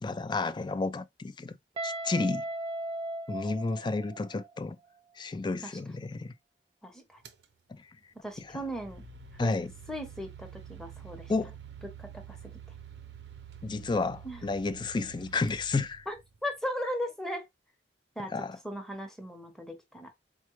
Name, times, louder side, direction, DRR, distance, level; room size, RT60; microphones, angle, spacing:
voice 1, 0.0-1.6 1.8-2.4 3.3-4.8 5.2-6.3 7.7-7.8 9.4-9.7 11.3-11.5 13.6-16.1 18.3-18.6, left 3 dB, 25° left, 0.3 m, -31 dB
Guitar, 1.8-4.6, right 1 dB, 30° right, 0.5 m, -37 dB
voice 2, 6.8-7.2 8.2-9.0 9.4-9.5 9.9-11.3 11.8-12.4 14.2-14.4 16.1-16.2 16.4-17.5 18.2-18.3 18.6-20.1, equal, 5° left, 0.8 m, -37 dB
sound 1, 7.2-7.4 8.4-16.4, right 7 dB, 75° right, 0.7 m, -48 dB
4.1 x 2.2 x 3.1 m
head